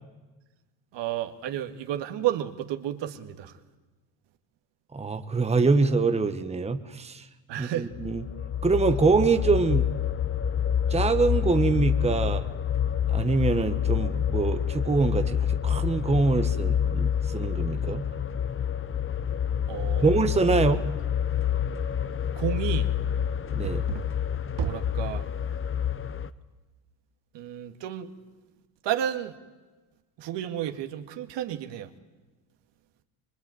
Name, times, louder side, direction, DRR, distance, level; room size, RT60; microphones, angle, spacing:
voice 1, 0.9-3.5 7.5-7.9 19.7-20.2 22.4-22.9 23.6-24.1 24.6-25.3 27.3-28.1 28.8-29.3 30.2-31.9, right 11 dB, 65° right, 7 dB, 2.1 m, -31 dB
voice 2, 4.9-7.2 7.6-8.2 8.6-9.9 10.9-12.5 13.1-18.0 20.0-20.8 23.5-23.8, right 4 dB, 15° right, 8 dB, 1.3 m, -24 dB
sound 1, 7.9-26.3, left 9 dB, 25° left, 1.0 m, -28 dB
24.0 x 22.5 x 9.4 m, 1.2 s
cardioid pair, 110°, 46 cm